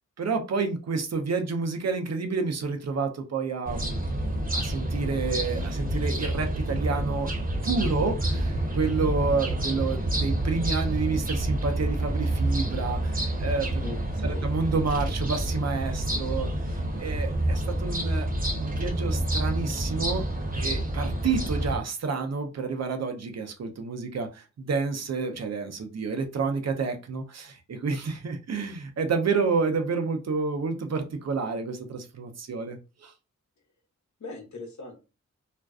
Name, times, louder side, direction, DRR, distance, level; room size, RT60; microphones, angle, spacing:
voice 1, 0.2-4.0 4.5-7.3 7.6-13.8 14.2-16.5 17.0-18.3 18.6-20.2 20.5-33.1, right 4 dB, 60° right, 5 dB, 0.6 m, -29 dB
sound 1, 3.6-21.8, right 1 dB, 30° right, 0.8 m, -28 dB
voice 2, 13.8-14.5 34.2-34.9, left 3 dB, 65° left, 2 dB, 0.9 m, -40 dB
2.4 x 2.2 x 2.3 m, 0.31 s
cardioid pair, 40°, 31 cm